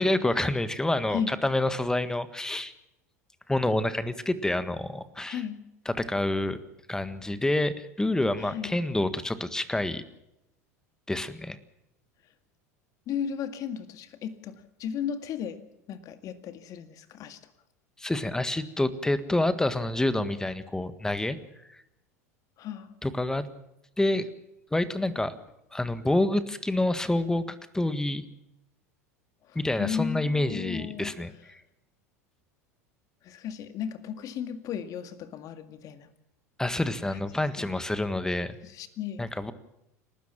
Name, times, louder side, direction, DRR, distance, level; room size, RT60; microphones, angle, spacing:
voice 1, 0.0-2.7 3.5-5.4 5.8-6.6 6.9-10.0 11.1-11.6 18.0-21.4 21.7-21.8 23.0-23.5 24.0-24.3 24.7-25.3 25.7-27.4 27.7-28.2 29.5-31.6 36.6-38.6 39.2-39.5, left 1 dB, 5° left, 13 dB, 1.6 m, -27 dB
voice 2, 5.3-5.6 8.4-8.7 13.1-15.6 15.9-17.4 22.6-22.9 29.5-31.2 33.2-36.1 37.1-37.7 38.6-39.2, left 8 dB, 45° left, 10 dB, 2.1 m, -35 dB
29.0 x 13.0 x 7.4 m, 0.87 s
figure-of-eight pair, 80°, 8 cm